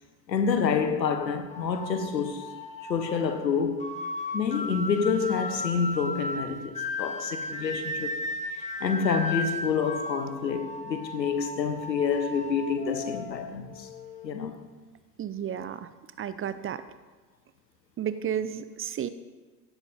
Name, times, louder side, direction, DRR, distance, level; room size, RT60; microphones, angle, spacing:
voice 1, 0.3-2.5 2.9-3.9 4.3-8.1 8.5-13.9 14.2-14.7, left 6 dB, 80° left, 1.4 m, -28 dB
sound 1, 1.5-14.3, left 2 dB, 15° left, 1.7 m, -36 dB
voice 2, 15.2-15.9 16.2-16.8 18.0-19.1, right 9 dB, 25° right, 0.8 m, -32 dB
16.5 x 11.0 x 5.3 m
figure-of-eight pair, 70°, 50 cm